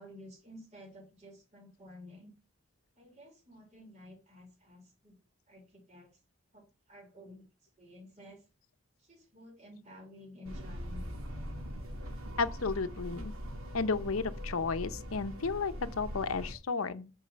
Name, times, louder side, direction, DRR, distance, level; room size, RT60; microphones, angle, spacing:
voice 1, 0.0-2.3 2.9-5.1 5.5-6.1 6.5-7.5 7.8-8.4 9.0-11.2, left 1 dB, 30° right, 3.2 m, -52 dB
sound 1, 10.4-16.5, equal, 80° right, 2.2 m, -41 dB
voice 2, 12.4-13.3 13.7-17.1, left 4 dB, 80° left, 0.7 m, -33 dB
9.3 x 4.8 x 6.6 m
head